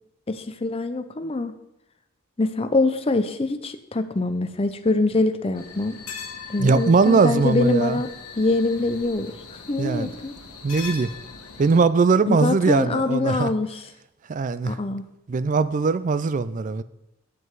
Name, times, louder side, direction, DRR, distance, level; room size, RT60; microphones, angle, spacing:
voice 1, 0.3-1.6 2.4-6.0 6.5-8.1 8.4-10.4 12.3-13.8 14.6-15.0, left 2 dB, 25° left, 9 dB, 0.5 m, -24 dB
sound 1, 5.6-11.8, left 6 dB, 90° left, 1.4 m, -40 dB
voice 2, 6.6-8.0 9.8-10.1 10.6-11.1 11.6-13.5 14.3-14.8 15.3-16.8, right 4 dB, 35° right, 15 dB, 0.3 m, -20 dB
8.1 x 7.8 x 4.7 m, 0.88 s
head